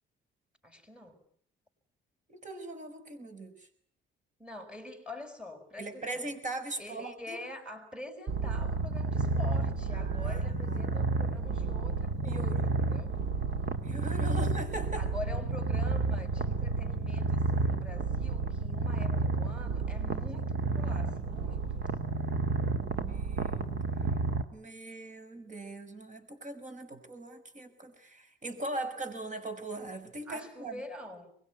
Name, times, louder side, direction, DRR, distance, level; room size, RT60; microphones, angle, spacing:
voice 1, 0.6-1.2 4.4-6.3 6.8-13.1 14.9-21.9 30.3-31.3, left 2 dB, 5° right, 6.6 m, -45 dB
voice 2, 2.3-3.7 5.8-7.4 9.9-11.0 12.2-12.8 13.8-15.1 23.0-23.9 24.5-30.8, right 2 dB, 40° right, 5.8 m, -40 dB
Purr, 8.3-24.4, right 3 dB, 60° right, 2.8 m, -31 dB
24.0 x 21.5 x 9.6 m
cardioid pair, 90°, 20 cm